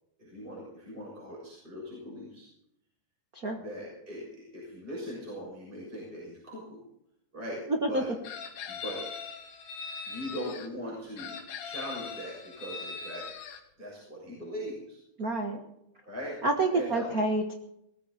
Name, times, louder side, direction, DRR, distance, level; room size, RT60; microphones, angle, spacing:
voice 1, 0.2-2.5 3.6-6.8 7.3-8.1 8.7-9.0 10.0-11.4 11.6-13.3 13.8-15.0 16.0-16.4 16.7-17.1, equal, 15° right, -4 dB, 6.6 m, -40 dB
voice 2, 7.7-8.0 15.2-15.6 16.4-17.5, right 2 dB, 85° right, 4 dB, 0.8 m, -28 dB
Chicken rooster, 8.2-10.7 11.2-13.6, left 5 dB, 75° left, 3.4 m, -40 dB
19.5 x 14.5 x 4.2 m, 0.77 s
omnidirectional pair, 4.2 m